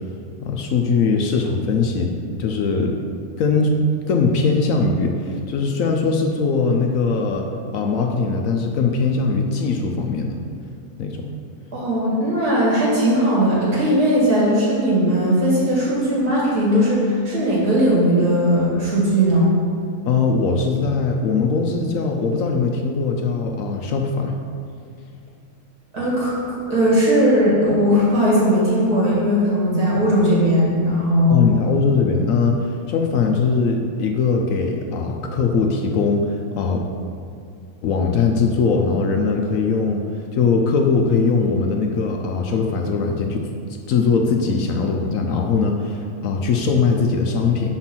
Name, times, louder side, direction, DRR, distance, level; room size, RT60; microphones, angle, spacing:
voice 1, 0.4-2.1 2.4-3.0 3.4-3.8 4.1-7.5 7.7-10.4 11.0-11.3 20.1-24.4 31.3-36.8 37.8-40.0 40.3-43.5 43.9-47.8, left 4 dB, 70° left, 3 dB, 0.9 m, -20 dB
voice 2, 11.7-19.5 25.9-26.4 26.7-31.4, equal, 75° right, -7 dB, 2.5 m, -18 dB
5.7 x 4.4 x 6.0 m, 2.4 s
omnidirectional pair, 1.7 m